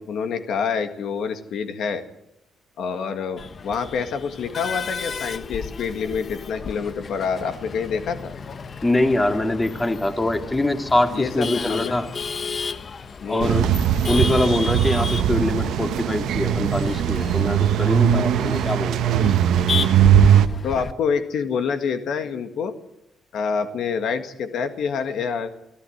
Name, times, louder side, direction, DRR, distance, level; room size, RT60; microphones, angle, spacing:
voice 1, 0.0-2.0 2.8-8.3 11.1-12.0 13.2-13.6 19.1-19.2 20.6-22.7 23.3-25.5, left 6 dB, 70° left, 9 dB, 1.8 m, -27 dB
Male speech man speaking / Laughter / Chatter, 3.4-20.9, left 5 dB, 40° left, 1.0 m, -32 dB
voice 2, 8.8-12.1 13.3-13.7 14.1-19.2, left 1 dB, 15° left, 7 dB, 2.4 m, -23 dB
sound 1, 13.4-20.5, right 10 dB, 80° right, 1.2 m, -19 dB
23.5 x 15.0 x 8.0 m, 0.81 s
cardioid pair, 90°, 0 cm